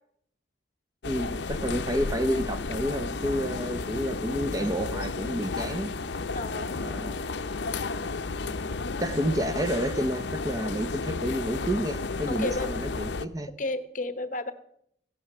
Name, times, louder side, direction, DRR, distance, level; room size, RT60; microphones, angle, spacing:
sound 1, 1.0-13.3, left 3 dB, 60° left, 0.6 m, -32 dB
voice 1, 1.0-5.9 6.8-7.2 9.0-13.5, equal, 20° right, 0.6 m, -30 dB
voice 2, 6.3-6.9 12.3-12.7 13.6-14.5, left 2 dB, 40° left, 1.0 m, -32 dB
16.0 x 9.2 x 6.7 m
head